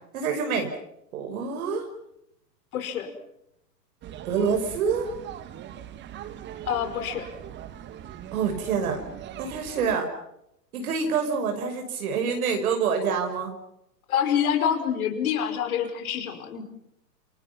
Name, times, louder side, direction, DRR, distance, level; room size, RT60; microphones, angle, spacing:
voice 1, 0.1-0.7 1.1-1.9 4.2-5.1 8.3-9.0 9.4-10.1 10.7-13.5, right 6 dB, 60° right, 4 dB, 6.0 m, -26 dB
voice 2, 2.7-3.1 6.7-7.3 14.1-16.6, left 8 dB, 60° left, 6 dB, 5.3 m, -26 dB
sound 1, 4.0-10.0, right 10 dB, 20° right, 1.7 m, -40 dB
28.5 x 27.5 x 6.0 m, 0.80 s
hypercardioid pair, 130°, 49 cm